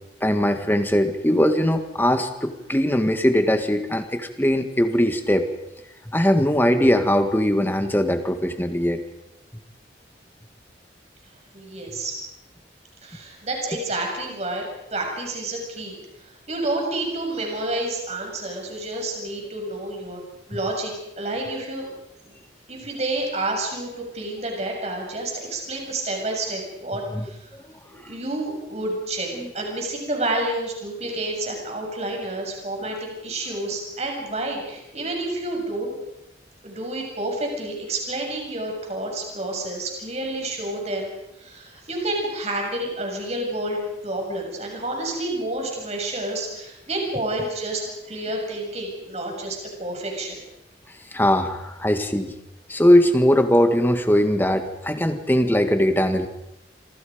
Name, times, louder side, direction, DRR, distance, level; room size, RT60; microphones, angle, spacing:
voice 1, 0.2-5.5 6.1-9.0 27.1-27.3 27.5-27.6 29.4-29.5 51.1-52.3 52.7-56.3, equal, 10° left, 7 dB, 1.7 m, -20 dB
voice 2, 11.5-12.2 13.0-16.0 16.5-20.2 20.5-21.9 22.2-22.4 22.7-27.4 27.9-36.0 36.6-41.1 41.4-50.4, right 2 dB, 35° right, 1 dB, 7.1 m, -29 dB
27.5 x 25.5 x 5.2 m, 0.88 s
head